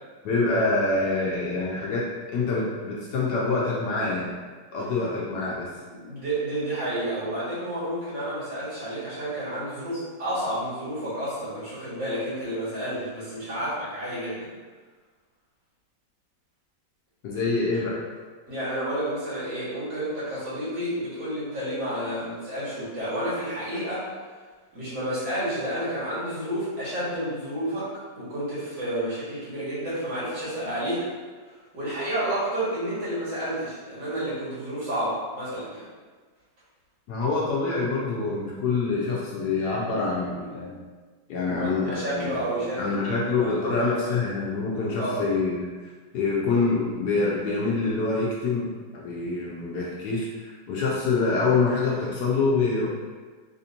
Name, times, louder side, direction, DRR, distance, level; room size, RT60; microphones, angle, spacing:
voice 1, 0.2-4.3 4.7-5.7 17.2-18.0 37.1-40.8 41.3-42.3 42.8-45.7 46.1-52.9, left 3 dB, 70° left, -5 dB, 1.1 m, -26 dB
voice 2, 5.9-14.5 18.5-24.1 24.7-27.9 28.1-31.1 31.7-35.8 41.5-44.2 44.9-45.2, right 1 dB, 70° right, -11 dB, 2.3 m, -30 dB
4.2 x 2.6 x 2.8 m, 1.4 s
omnidirectional pair, 2.0 m